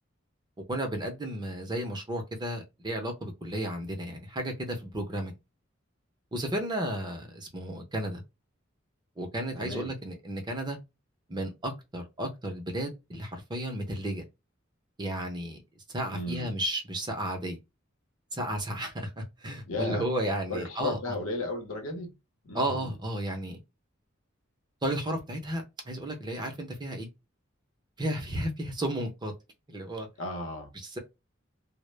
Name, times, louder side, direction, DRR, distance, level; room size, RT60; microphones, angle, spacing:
voice 1, 0.7-5.3 6.3-8.2 9.2-10.8 11.3-14.2 15.0-15.6 15.9-17.6 18.3-21.2 22.5-23.6 24.8-27.1 28.0-29.3 29.7-30.1 30.7-31.0, right 1 dB, 20° right, 0.6 m, -33 dB
voice 2, 9.6-9.9 16.1-16.5 19.7-20.0 20.5-22.1 22.4-22.9 30.2-30.7, left 2 dB, 75° left, 0.7 m, -34 dB
2.0 x 2.0 x 3.1 m
head